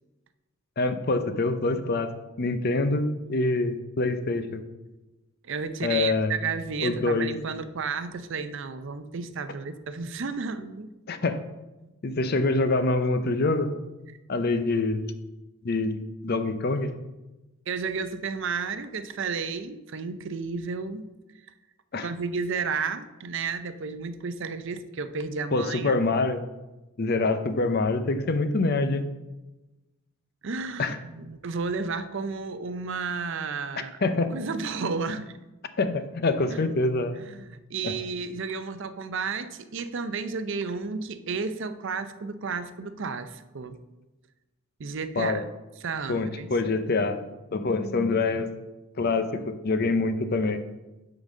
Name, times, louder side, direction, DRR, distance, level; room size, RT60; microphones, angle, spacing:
voice 1, 0.8-2.1 2.4-4.6 5.8-6.3 6.8-7.3 11.1-11.4 12.0-13.7 14.3-15.1 15.6-16.9 21.9-22.1 25.5-26.4 27.0-29.1 30.8-31.0 34.0-34.3 35.8-37.2 37.8-37.9 45.2-45.4 46.1-48.5 49.0-50.6, left 3 dB, 50° left, 10 dB, 0.6 m, -25 dB
voice 2, 5.4-10.9 17.7-21.1 22.0-26.0 30.4-34.0 34.3-35.3 36.5-36.6 37.2-43.8 44.8-45.4 45.8-46.5, right 5 dB, 60° right, 11 dB, 0.5 m, -32 dB
8.8 x 3.9 x 6.1 m, 1.1 s
head